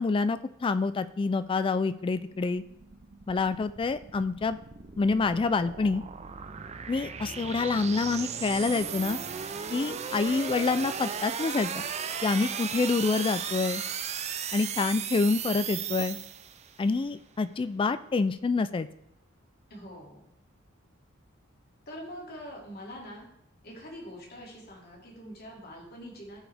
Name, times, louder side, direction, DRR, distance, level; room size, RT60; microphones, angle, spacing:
voice 1, 0.0-2.6 3.3-4.6 5.0-6.0 6.9-9.2 9.7-11.8 12.2-13.8 14.5-16.2 16.8-18.9, left 4 dB, 25° left, 13 dB, 0.3 m, -27 dB
sound 1, 2.2-16.8, right 7 dB, 35° right, 0.5 m, -36 dB
voice 2, 19.7-20.3 21.9-23.3 23.6-26.4, equal, 50° left, -2 dB, 2.5 m, -44 dB
15.0 x 5.0 x 3.4 m, 0.77 s
head